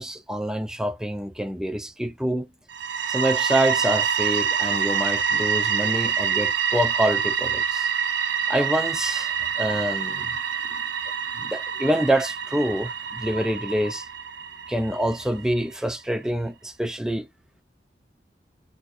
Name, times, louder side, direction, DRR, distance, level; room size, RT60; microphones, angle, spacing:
voice 1, 0.0-2.5 3.1-7.9 8.5-10.3 11.3-14.1 14.7-17.3, right 1 dB, 5° right, 0.4 m, -26 dB
sound 1, 2.7-15.4, right 7 dB, 80° right, 0.5 m, -26 dB
3.4 x 2.7 x 4.1 m
head